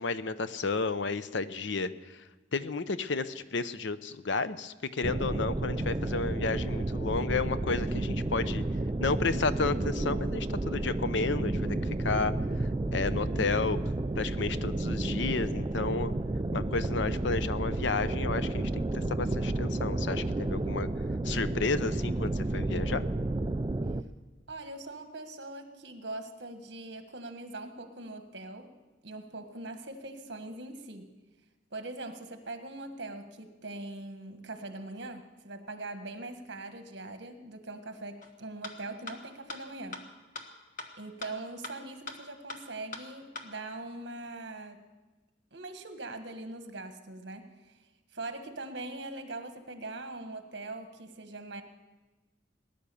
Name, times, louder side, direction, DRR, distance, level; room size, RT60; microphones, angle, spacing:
voice 1, 0.0-1.9 2.5-8.6 9.0-12.3 12.9-13.8 14.2-16.1 16.5-20.9 21.2-23.0, left 4 dB, 70° left, 13 dB, 0.7 m, -32 dB
sound 1, 5.0-24.0, right 2 dB, 20° right, 0.4 m, -31 dB
voice 2, 24.5-28.7 29.0-31.1 31.7-40.0 41.0-44.8 45.5-47.8 48.1-51.6, right 2 dB, 60° right, 7 dB, 1.5 m, -42 dB
sound 2, 38.2-38.3 38.6-38.7 39.1-39.2 39.5-39.6 39.9-40.0 40.4-40.5 40.8-40.9 41.2-41.3 41.6-41.7 42.1-42.2 42.5-42.6 42.9-43.0 43.4-43.5, left 3 dB, 45° left, 1.4 m, -39 dB
19.0 x 10.5 x 7.0 m, 1.2 s
head